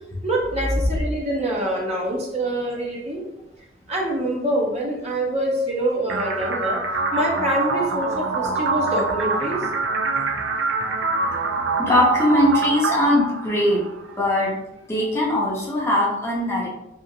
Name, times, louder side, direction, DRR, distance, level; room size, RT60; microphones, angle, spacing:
voice 1, 0.2-3.2 3.9-6.8 7.1-9.7, right 1 dB, 35° right, -3 dB, 0.6 m, -25 dB
sound 1, 6.1-14.1, right 4 dB, 75° right, 0.4 m, -25 dB
voice 2, 11.8-13.8 14.2-14.6 14.9-16.7, left 1 dB, 15° left, -5 dB, 0.6 m, -20 dB
2.8 x 2.4 x 2.6 m, 0.88 s
head